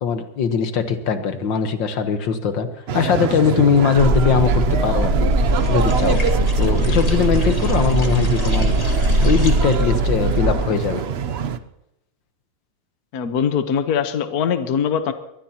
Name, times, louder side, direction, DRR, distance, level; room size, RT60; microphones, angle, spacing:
voice 1, 0.0-2.7 2.9-6.2 6.6-8.8 9.2-11.1, left 6 dB, 80° left, 8 dB, 1.9 m, -20 dB
sound 1, 2.9-11.6, right 7 dB, 80° right, 0.5 m, -24 dB
sound 2, 4.0-10.5, right 1 dB, 65° right, 7.9 m, -20 dB
sound 3, 5.4-10.0, left 2 dB, 20° left, 1.8 m, -35 dB
voice 2, 13.1-15.1, left 7 dB, 60° left, 9 dB, 1.4 m, -22 dB
23.0 x 19.5 x 2.9 m, 0.87 s
omnidirectional pair, 2.0 m